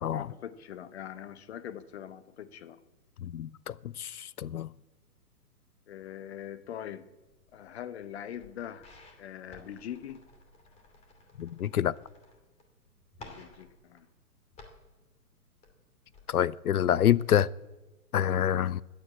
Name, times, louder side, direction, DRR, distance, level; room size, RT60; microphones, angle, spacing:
voice 1, 0.1-2.8 5.9-7.1 7.5-8.9 9.2-10.2 13.2-14.1, left 10 dB, 45° left, 1.0 m, -42 dB
voice 2, 3.2-4.7 11.4-11.9 16.3-17.5 18.1-18.8, left 10 dB, 70° left, 0.6 m, -27 dB
sound 1, 7.3-8.1 8.3-12.6 12.9-14.9 15.4-16.8 17.1-17.3 17.7-17.8, left 2 dB, 15° left, 2.5 m, -54 dB
15.0 x 10.0 x 8.4 m
figure-of-eight pair, 125°, 46 cm